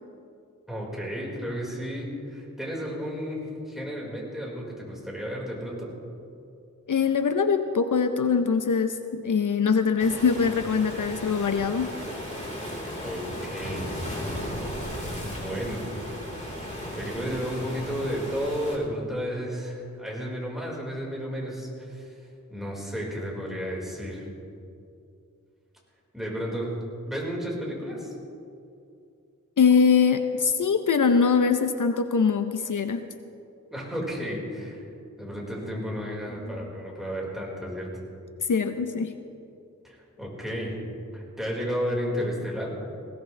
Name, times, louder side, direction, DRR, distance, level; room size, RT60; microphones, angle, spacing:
voice 1, 0.7-5.9 13.0-13.9 15.2-15.9 16.8-22.2 22.5-24.3 26.1-26.7 27.0-28.1 33.7-34.9 35.2-37.9 39.8-40.7 41.1-42.7, equal, ahead, -4 dB, 4.7 m, -32 dB
voice 2, 6.9-11.9 29.6-33.1 38.5-39.1, left 5 dB, 70° left, 8 dB, 0.7 m, -23 dB
Waves surf, 10.0-18.7, equal, 20° left, 3.9 m, -35 dB
20.5 x 17.0 x 3.3 m, 2.6 s
wide cardioid pair, 75°, 32 cm